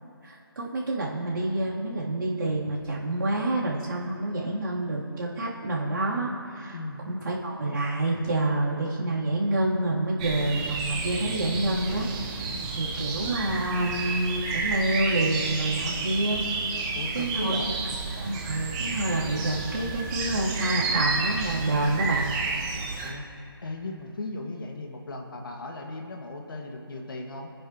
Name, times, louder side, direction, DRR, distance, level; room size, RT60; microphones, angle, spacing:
voice 1, 0.2-6.7 7.0-16.4 17.1-17.6 18.2-22.3, right 2 dB, 60° right, -6 dB, 3.3 m, -28 dB
voice 2, 6.7-7.1 16.9-17.7 23.0-23.3 23.6-27.5, left 2 dB, 60° left, 1 dB, 2.0 m, -36 dB
sound 1, 10.2-23.1, right 4 dB, 15° right, 1.0 m, -31 dB
24.0 x 9.7 x 3.1 m, 2.7 s
figure-of-eight pair, 160°, 13 cm